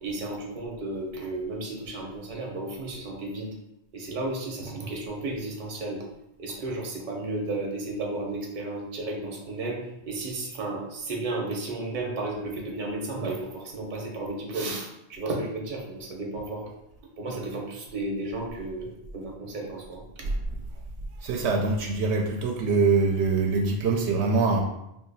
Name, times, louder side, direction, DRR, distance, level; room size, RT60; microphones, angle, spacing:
voice 1, 0.0-3.5 3.9-6.0 6.4-16.7 17.2-20.0, right 2 dB, 50° right, 0 dB, 0.8 m, -33 dB
voice 2, 21.2-24.6, right 4 dB, 80° right, 1 dB, 0.8 m, -24 dB
2.8 x 2.6 x 3.9 m, 0.83 s
omnidirectional pair, 1.1 m